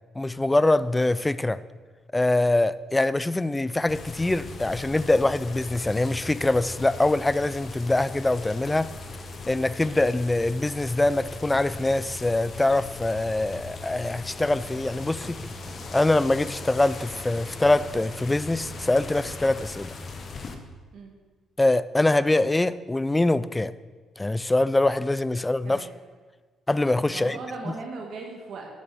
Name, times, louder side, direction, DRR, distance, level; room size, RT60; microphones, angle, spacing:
voice 1, 0.1-1.6 2.1-8.9 9.5-15.6 15.9-19.9 21.6-23.7 24.2-25.9 26.7-27.4 27.7-27.8, left 2 dB, 15° left, 0.4 m, -24 dB
sound 1, 3.9-20.6, left 3 dB, 45° left, 1.1 m, -39 dB
voice 2, 27.1-28.7, right 3 dB, 70° right, 1.5 m, -38 dB
8.4 x 7.0 x 6.2 m
cardioid pair, 90°, 0 cm